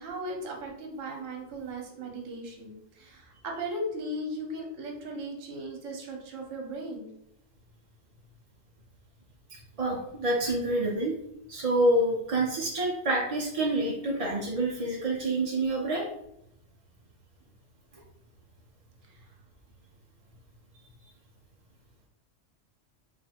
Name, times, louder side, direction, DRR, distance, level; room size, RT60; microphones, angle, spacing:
voice 1, 0.0-7.1, right 1 dB, 75° right, 1 dB, 1.2 m, -37 dB
voice 2, 9.8-11.2 11.5-16.0, right 1 dB, 35° right, -3 dB, 0.6 m, -27 dB
3.3 x 2.7 x 4.2 m, 0.78 s
omnidirectional pair, 1.3 m